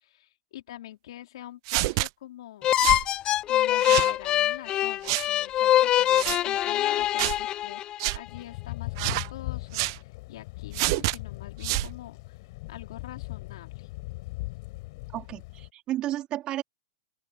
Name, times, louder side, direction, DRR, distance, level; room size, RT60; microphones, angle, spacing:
voice 1, 0.0-2.9 3.5-12.4 12.7-13.9, left 13 dB, 70° left, 4.1 m, -45 dB
sound 1, 1.7-2.1 2.8-3.0 3.8-4.1 5.0-5.3 6.1-6.4 7.2-7.4 8.0-8.2 9.0-9.3 9.7-10.0 10.7-11.2 11.6-11.9, right 25 dB, 50° right, 0.3 m, -27 dB
sound 2, 2.6-8.1, left 13 dB, 30° left, 0.5 m, -24 dB
Thunder / Rain, 8.3-15.7, left 23 dB, 55° left, 4.3 m, -39 dB
voice 2, 15.1-16.6, right 13 dB, 30° right, 3.8 m, -32 dB
open air
hypercardioid pair, 130°, 3 cm